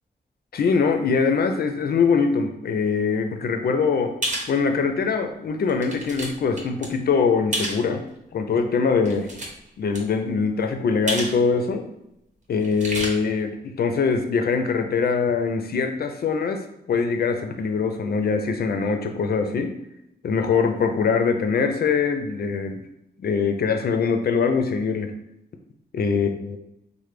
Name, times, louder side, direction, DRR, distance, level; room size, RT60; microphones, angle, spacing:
voice 1, 0.5-4.1 4.5-8.0 8.3-9.3 9.8-11.9 12.5-19.7 20.2-22.8 23.2-25.2 25.9-26.6, left 5 dB, 65° left, 6 dB, 0.4 m, -23 dB
sound 1, 4.2-4.5 5.1-5.2 5.7-6.3 6.6-6.9 7.5-7.8 9.0-9.7 9.9-10.0 11.1-11.4 11.6-11.7 12.6-13.1, right 1 dB, 45° right, 0.8 m, -29 dB
3.2 x 2.1 x 3.2 m, 0.86 s
wide cardioid pair, 110°, 18 cm